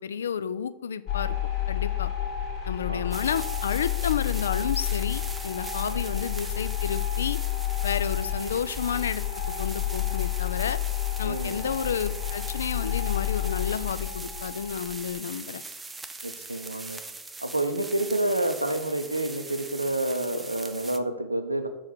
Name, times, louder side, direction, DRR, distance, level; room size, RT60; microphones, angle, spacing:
voice 1, 0.0-1.4 1.7-2.1 2.7-7.4 7.8-9.2 9.6-10.8 11.2-15.6, left 7 dB, 65° left, 15 dB, 0.3 m, -31 dB
sound 1, 1.1-15.2, left 12 dB, 40° left, 2.0 m, -30 dB
sound 2, 3.1-21.0, right 3 dB, 10° right, 0.5 m, -41 dB
voice 2, 11.2-11.6 16.2-17.0 17.4-21.7, right 1 dB, 85° right, 8 dB, 0.6 m, -29 dB
6.3 x 4.8 x 6.0 m, 1.0 s
figure-of-eight pair, 90°, 0 cm